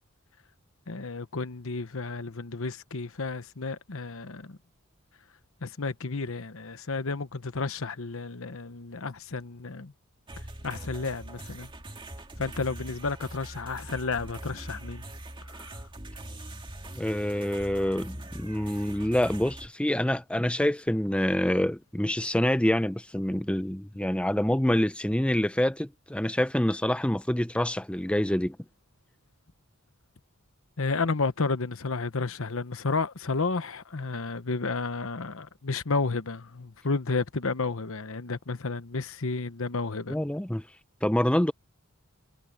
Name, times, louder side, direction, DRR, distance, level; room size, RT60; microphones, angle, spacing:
voice 1, 0.9-4.6 5.6-9.9 10.6-11.7 12.4-15.0 15.5-15.7 30.8-40.2, left 3 dB, 65° left, 1.0 m, -32 dB
sound 1, 10.3-19.7, right 1 dB, 25° right, 2.2 m, -42 dB
voice 2, 17.0-28.6 40.1-40.6 41.0-41.5, left 1 dB, 5° left, 0.6 m, -26 dB
head